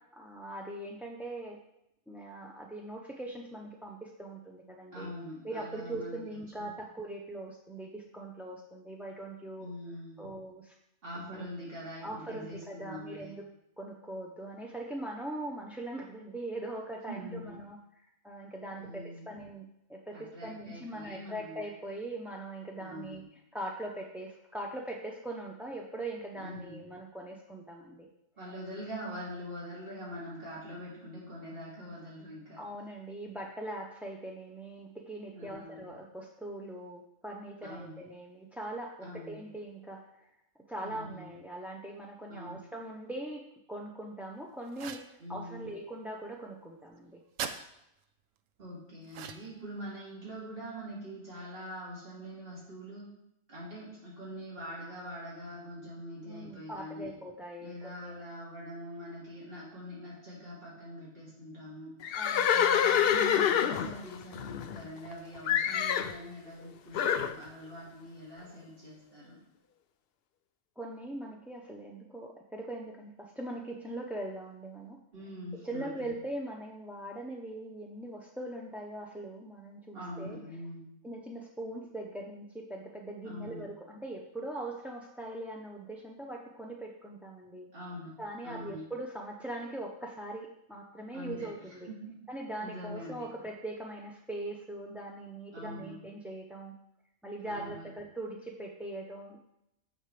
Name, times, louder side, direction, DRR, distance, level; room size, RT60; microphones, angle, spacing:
voice 1, 0.1-1.6 2.1-5.1 5.4-9.7 10.2-10.7 11.2-11.5 12.0-13.4 13.8-17.8 18.2-23.2 23.5-28.1 32.6-40.0 40.7-43.4 43.7-47.2 56.3-58.2 62.1-62.7 70.8-75.0 75.6-80.4 81.0-87.7 88.2-91.9 92.3-96.7 97.2-99.4, right 1 dB, ahead, -1 dB, 0.5 m, -41 dB
voice 2, 4.9-6.7 9.6-10.3 11.0-13.3 17.1-17.6 18.7-19.3 20.1-21.6 22.8-23.2 26.3-26.8 28.4-32.6 35.3-35.9 37.6-38.0 39.0-39.4 40.8-41.3 42.3-42.6 45.2-45.8 48.6-53.0 53.5-57.1 57.6-61.9 62.5-69.4 75.1-76.2 79.9-80.9 83.2-83.6 87.7-88.1 88.4-88.9 91.1-91.5 91.9-92.2 92.6-93.3 95.5-95.9 97.4-97.9, equal, 45° right, -8 dB, 3.2 m, -43 dB
sound 1, 44.7-45.1 47.4-47.6 49.1-49.6, right 8 dB, 75° right, 1.0 m, -39 dB
Livestock farm animals working animals, 62.0-65.1 65.5-66.2 66.9-67.3, left 9 dB, 60° left, 0.6 m, -27 dB
15.5 x 5.2 x 3.3 m, 0.82 s
omnidirectional pair, 1.4 m